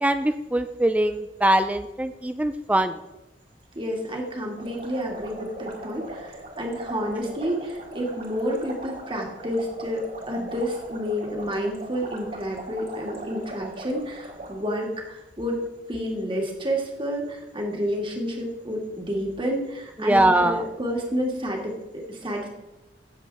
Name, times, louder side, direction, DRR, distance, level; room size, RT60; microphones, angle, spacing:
voice 1, 0.0-3.0 20.0-20.6, right 1 dB, 10° right, 10 dB, 0.4 m, -22 dB
voice 2, 3.8-15.6 15.9-22.5, equal, 30° right, 0 dB, 2.2 m, -30 dB
sound 1, 4.6-14.5, right 1 dB, 60° right, 3.5 m, -40 dB
17.0 x 7.5 x 3.5 m, 1.0 s
head